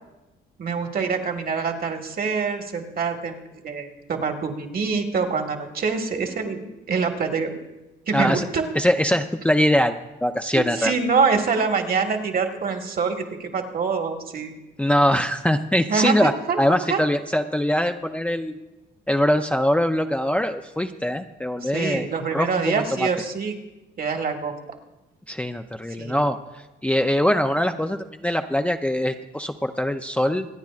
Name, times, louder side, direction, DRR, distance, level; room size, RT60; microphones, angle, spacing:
voice 1, 0.6-7.5 8.1-8.7 10.5-14.5 15.9-17.0 21.6-23.5 24.0-24.5 26.0-26.3, right 5 dB, 50° right, 4 dB, 1.7 m, -25 dB
voice 2, 8.1-8.5 8.7-10.9 14.8-16.3 16.6-18.6 19.1-23.1 25.3-30.5, equal, 5° left, 5 dB, 0.5 m, -22 dB
25.5 x 9.4 x 2.5 m, 1.0 s
cardioid pair, 90°, 20 cm